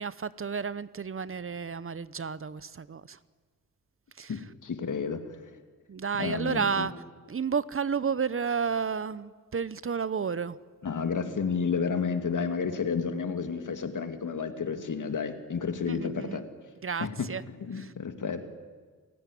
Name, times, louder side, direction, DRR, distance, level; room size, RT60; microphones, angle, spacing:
voice 1, 0.0-3.2 4.2-4.3 5.9-6.9 7.3-10.6 15.8-16.4 16.8-17.4 17.7-17.9, right 6 dB, 40° right, 17 dB, 0.8 m, -31 dB
voice 2, 4.3-5.4 6.2-6.9 10.8-16.5 17.0-17.3 17.6-18.4, left 5 dB, 65° left, 8 dB, 2.4 m, -31 dB
29.0 x 17.0 x 10.0 m, 1.5 s
wide cardioid pair, 110°, 33 cm